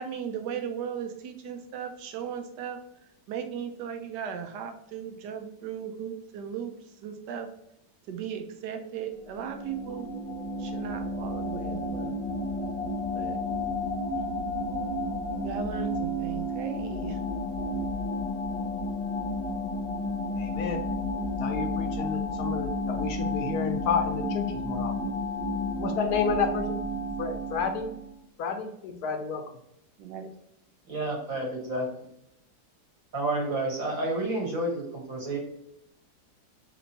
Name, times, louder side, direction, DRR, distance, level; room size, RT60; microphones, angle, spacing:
voice 1, 0.0-2.8 3.3-7.5 8.1-10.1 10.6-12.1 13.1-13.4 15.4-17.2 30.0-30.3, right 7 dB, 85° right, 6 dB, 1.2 m, -37 dB
sound 1, 9.2-28.1, left 1 dB, 40° left, 0.5 m, -31 dB
voice 2, 20.4-20.8 21.4-25.1 25.8-26.8 27.2-27.9 28.4-29.6, left 5 dB, 75° left, 5 dB, 1.0 m, -31 dB
voice 3, 30.9-31.9 33.1-35.4, right 2 dB, 55° right, -1 dB, 1.5 m, -30 dB
3.4 x 2.9 x 3.9 m, 0.77 s
omnidirectional pair, 1.8 m